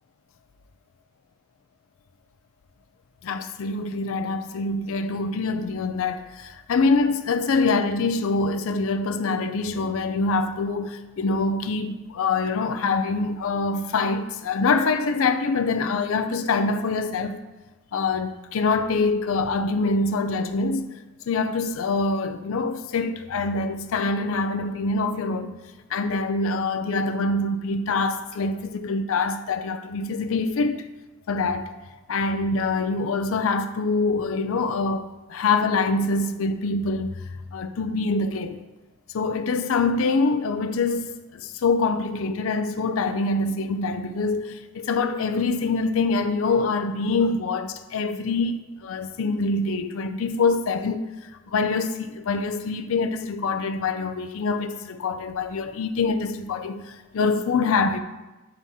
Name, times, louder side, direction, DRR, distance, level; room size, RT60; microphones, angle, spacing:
voice 1, 3.2-17.4 17.9-20.9 21.3-25.6 25.9-30.9 31.3-31.7 32.1-37.2 37.5-38.6 39.1-51.1 51.5-58.0, left 3 dB, 75° left, 0.4 m, -25 dB
8.7 x 3.6 x 4.2 m
head